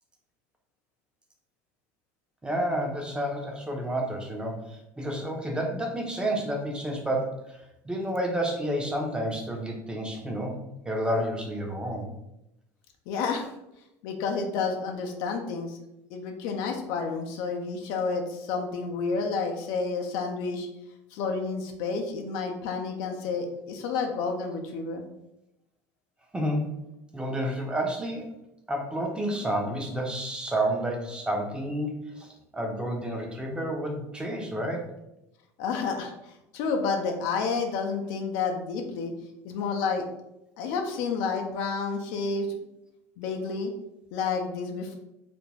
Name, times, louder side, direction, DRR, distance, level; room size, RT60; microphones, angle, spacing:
voice 1, 2.4-12.1 26.3-26.8 27.1-28.3 28.7-34.9, right 1 dB, 10° right, 1 dB, 0.7 m, -30 dB
voice 2, 13.1-13.5 14.0-15.8 16.1-20.7 21.1-25.0 35.6-39.1 39.4-40.0 40.6-42.5 43.2-43.7 44.1-45.0, left 4 dB, 70° left, 3 dB, 0.4 m, -30 dB
2.4 x 2.1 x 3.2 m, 0.88 s
hypercardioid pair, 85°, 8 cm